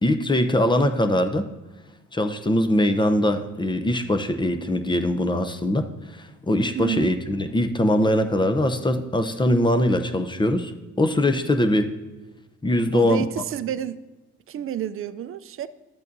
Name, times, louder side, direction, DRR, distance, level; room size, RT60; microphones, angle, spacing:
voice 1, 0.0-1.4 2.1-10.7 11.0-11.9 12.6-13.3, left 1 dB, 15° left, 0.7 m, -22 dB
voice 2, 6.7-7.1 12.9-14.0 14.5-15.7, right 10 dB, 45° right, 0.4 m, -29 dB
12.5 x 8.2 x 2.7 m
cardioid pair, 90°, 30 cm